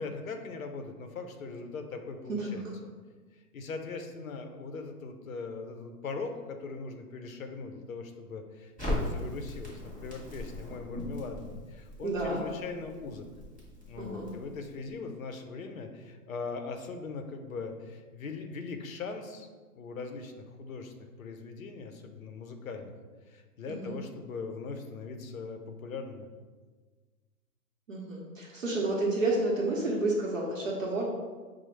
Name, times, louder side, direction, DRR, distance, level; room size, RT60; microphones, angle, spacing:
voice 1, 0.0-2.7 3.5-13.3 13.8-19.5 19.8-20.9 21.2-22.9 23.3-26.3, left 4 dB, 60° left, 6 dB, 0.6 m, -40 dB
voice 2, 2.3-2.7 12.0-12.4 14.0-14.3 23.7-23.9 27.9-31.0, right 2 dB, 55° right, -3 dB, 0.8 m, -30 dB
Crackle, 8.8-14.9, left 1 dB, ahead, 0.8 m, -39 dB
5.9 x 2.0 x 3.1 m, 1.4 s
hypercardioid pair, 180°, 47 cm